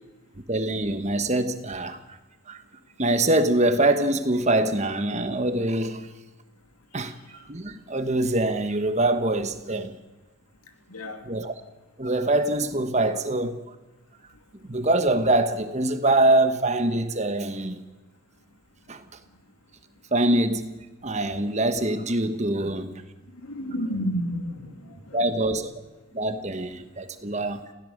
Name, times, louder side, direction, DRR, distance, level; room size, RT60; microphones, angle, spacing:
voice 1, 0.5-2.2 2.5-2.6 3.0-6.1 6.9-10.0 11.3-11.5 12.0-13.6 14.7-17.8 18.9-19.0 20.1-22.9 25.1-25.7 26.1-27.7, right 2 dB, 30° right, 1.3 m, -24 dB
voice 2, 10.9-11.2 22.6-22.7 23.4-25.4, equal, 80° left, 2.7 m, -31 dB
27.5 x 16.5 x 6.6 m
head